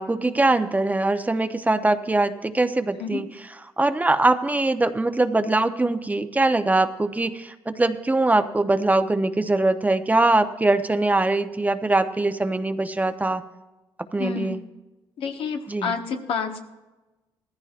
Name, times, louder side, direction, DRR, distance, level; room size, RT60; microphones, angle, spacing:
voice 1, 0.0-3.3 3.8-13.4 14.1-14.6 15.7-15.9, right 2 dB, 15° right, 8 dB, 0.8 m, -22 dB
voice 2, 14.2-14.5 15.2-16.6, left 6 dB, 70° left, 4 dB, 1.4 m, -29 dB
18.5 x 14.5 x 2.5 m, 1.1 s
supercardioid pair, 75°, 10 cm